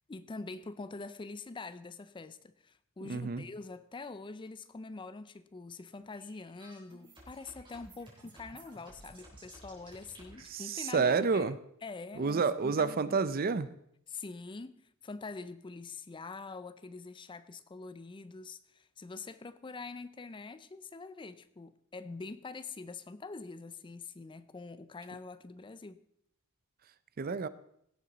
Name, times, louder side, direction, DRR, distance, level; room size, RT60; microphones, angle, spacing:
voice 1, 0.1-11.6 11.8-13.2 14.1-26.0, left 3 dB, 25° left, 0.4 m, -45 dB
voice 2, 3.0-3.4 10.5-11.6 12.2-13.7 27.2-27.5, right 5 dB, 45° right, 0.5 m, -29 dB
Glitch Stuff, 6.1-10.4, right 1 dB, 25° right, 3.7 m, -54 dB
17.0 x 7.9 x 4.0 m
head